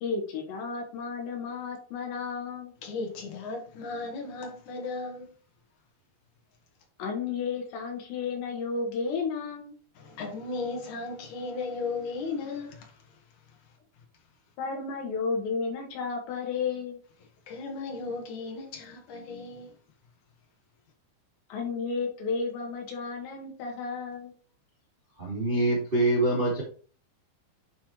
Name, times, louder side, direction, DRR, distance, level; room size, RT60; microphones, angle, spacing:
voice 1, 0.0-2.7 7.0-9.7 14.6-17.0 21.5-24.3, left 5 dB, 75° left, 3.6 m, -32 dB
voice 2, 2.8-5.3 10.0-14.0 17.5-19.8, left 4 dB, 55° left, 2.3 m, -36 dB
voice 3, 25.2-26.6, right 2 dB, 25° right, 1.1 m, -25 dB
10.5 x 4.4 x 3.2 m
omnidirectional pair, 5.3 m